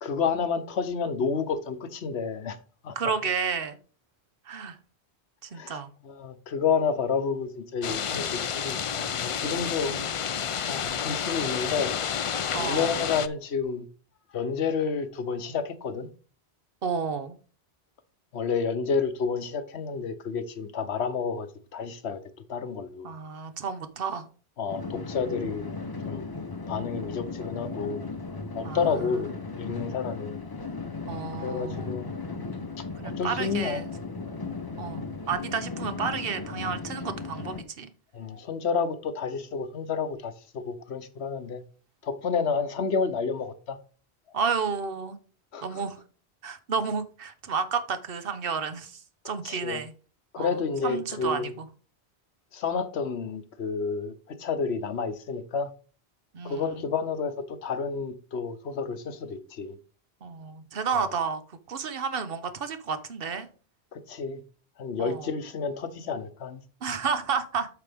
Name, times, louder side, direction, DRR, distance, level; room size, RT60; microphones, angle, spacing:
voice 1, 0.0-2.6 2.8-2.9 5.5-5.8 6.0-9.9 10.7-12.0 12.5-13.8 14.3-16.1 18.3-21.5 21.7-22.2 22.5-23.1 24.6-25.7 26.0-26.3 26.7-28.0 28.5-30.4 31.4-32.1 32.4-32.6 33.0-33.8 34.7-34.9 38.1-41.6 42.0-43.8 45.5-45.8 49.4-49.8 50.3-51.5 52.5-55.7 56.4-59.7 61.0-61.1 63.9-64.4 64.8-66.6, left 5 dB, 85° left, 1.2 m, -30 dB
voice 2, 2.9-3.8 4.5-4.8 5.4-5.9 9.9-10.1 12.5-13.0 16.8-17.4 23.0-24.3 28.6-29.3 31.1-32.0 33.0-33.9 34.8-37.9 42.3-42.6 44.3-45.2 45.6-46.0 46.4-49.9 50.4-51.7 56.3-56.8 60.2-61.4 61.7-63.5 65.0-65.3 66.8-67.7, right 5 dB, 60° right, 1.1 m, -31 dB
sound 1, 7.8-13.3, left 7 dB, 60° left, 0.3 m, -30 dB
sound 2, 24.7-37.6, left 4 dB, 25° left, 0.6 m, -36 dB
8.1 x 6.8 x 3.5 m
omnidirectional pair, 1.1 m